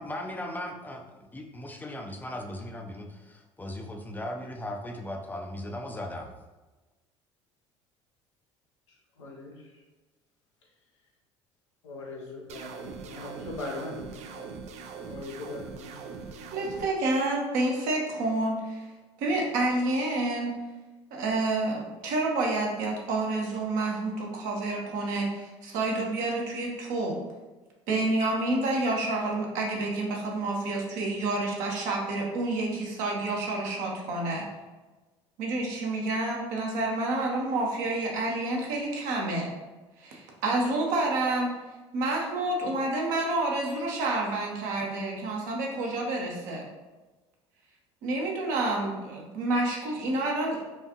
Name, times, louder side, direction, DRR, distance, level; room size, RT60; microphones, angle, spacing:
voice 1, 0.0-6.4, left 1 dB, 10° left, 3 dB, 0.6 m, -38 dB
voice 2, 8.9-9.8 11.8-14.5 15.0-16.5, left 2 dB, 80° left, -2 dB, 0.8 m, -41 dB
sound 1, 12.5-16.9, right 5 dB, 50° right, 0.4 m, -41 dB
voice 3, 16.5-18.9 19.2-20.5 21.1-27.2 27.9-34.5 35.4-39.5 40.0-41.5 41.9-46.7 48.0-50.6, right 2 dB, 65° right, -1 dB, 0.9 m, -29 dB
4.5 x 2.5 x 2.9 m, 1.2 s
hypercardioid pair, 60°, 15 cm